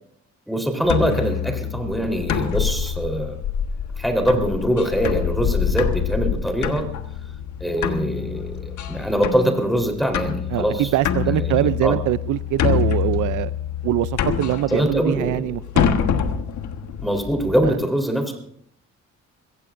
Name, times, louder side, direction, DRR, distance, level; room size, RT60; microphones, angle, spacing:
voice 1, 0.5-3.4 4.0-6.9 7.6-10.9 11.3-12.0 14.7-15.5 17.0-18.4, equal, ahead, 4 dB, 3.8 m, -23 dB
sound 1, 0.8-17.7, left 8 dB, 75° left, 1.4 m, -26 dB
voice 2, 10.5-13.5 13.8-16.1 17.6-17.7, right 15 dB, 80° right, 16 dB, 0.5 m, -23 dB
23.0 x 16.5 x 2.6 m, 0.68 s
cardioid pair, 90°, 30 cm